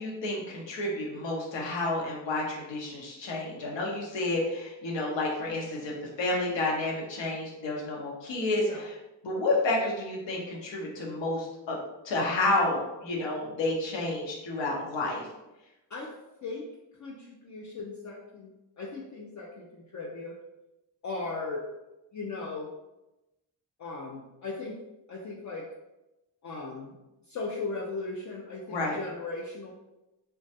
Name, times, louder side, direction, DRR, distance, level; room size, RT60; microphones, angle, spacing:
voice 1, 0.0-8.9 9.2-11.8 12.0-15.3 28.7-29.0, left 2 dB, 70° left, -2 dB, 0.8 m, -30 dB
voice 2, 17.0-20.4 21.0-21.7 22.1-22.7 23.8-24.8 25.1-25.6 26.4-27.0 27.3-29.7, left 3 dB, 40° left, -3 dB, 0.4 m, -37 dB
2.2 x 2.1 x 2.7 m, 0.97 s
cardioid pair, 50°, 45 cm